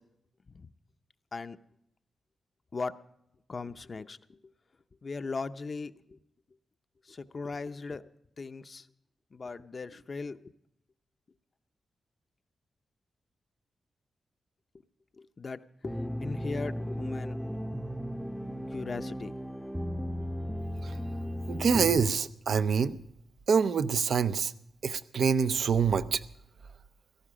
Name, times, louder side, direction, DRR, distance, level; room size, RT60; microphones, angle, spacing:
voice 1, 3.5-4.2 5.0-6.2 7.1-8.0 8.4-8.9 9.3-10.5 15.2-17.4 18.7-19.3, left 4 dB, 45° left, 10 dB, 0.6 m, -38 dB
sound 1, 15.8-22.1, equal, 5° right, 0.6 m, -35 dB
voice 2, 21.5-23.0 23.5-24.5 24.8-26.2, right 6 dB, 70° right, 14 dB, 0.6 m, -26 dB
17.0 x 14.5 x 5.0 m, 0.79 s
cardioid pair, 85°, 0 cm